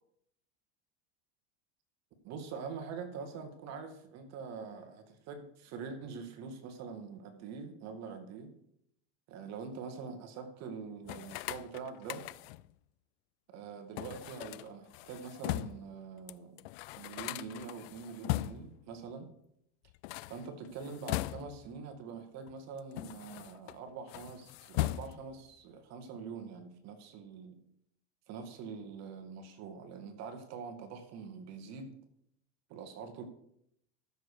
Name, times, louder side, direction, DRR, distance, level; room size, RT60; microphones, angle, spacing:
voice 1, 2.2-8.5 9.3-12.2 13.5-16.6 17.0-19.3 20.3-27.6 28.3-32.0 32.7-33.2, right 5 dB, 50° right, 6 dB, 2.0 m, -44 dB
sound 1, 11.0-12.7 14.0-15.9 16.3-16.4 16.6-18.8 19.9-21.7 22.5-23.8 24.1-25.4, left 18 dB, 65° left, 0.5 m, -39 dB
13.5 x 7.1 x 4.9 m, 0.74 s
supercardioid pair, 120°, 35 cm